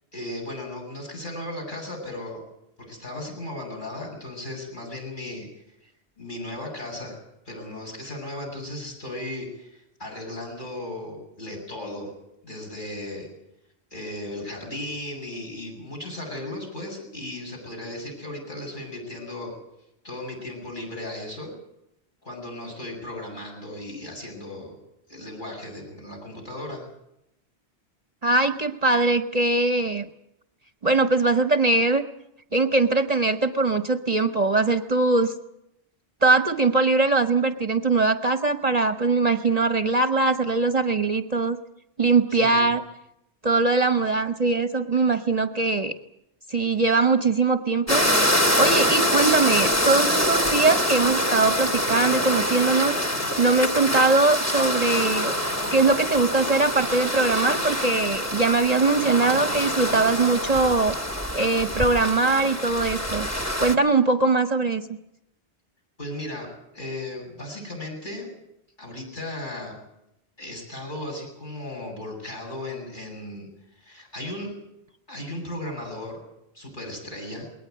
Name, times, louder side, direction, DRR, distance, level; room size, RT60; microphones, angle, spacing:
voice 1, 0.1-2.4 2.8-5.5 6.2-7.2 7.4-12.1 12.4-13.3 13.9-19.5 20.0-21.5 22.2-24.8 25.1-26.8 42.3-42.7 66.0-68.3 68.8-69.8 70.4-73.5 73.8-74.5 75.1-76.2 76.5-77.5, left 1 dB, 50° left, 2 dB, 8.2 m, -36 dB
voice 2, 28.2-30.1 30.8-32.0 32.5-35.3 36.2-41.6 42.0-42.8 43.4-45.9 46.5-48.0 48.4-52.9 53.4-55.4 55.7-60.9 61.3-63.3 63.6-64.8, right 3 dB, 40° right, 10 dB, 1.0 m, -21 dB
sound 1, 47.9-63.8, equal, 15° left, 1.7 m, -25 dB
21.5 x 18.5 x 9.5 m, 0.83 s
omnidirectional pair, 1.1 m